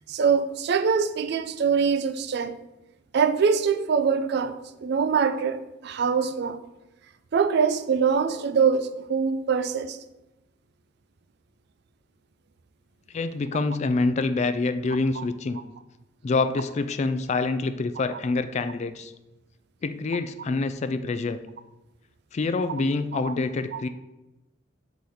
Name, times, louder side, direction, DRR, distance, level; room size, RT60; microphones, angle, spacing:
voice 1, 0.1-2.5 3.1-6.6 7.3-10.0 15.2-15.3 23.1-23.3 23.7-23.8, right 6 dB, 60° right, 0.4 m, -24 dB
voice 2, 13.1-15.6 16.2-19.1 19.8-21.4 22.3-23.9, left 3 dB, 35° left, 0.3 m, -26 dB
6.4 x 4.0 x 4.1 m
head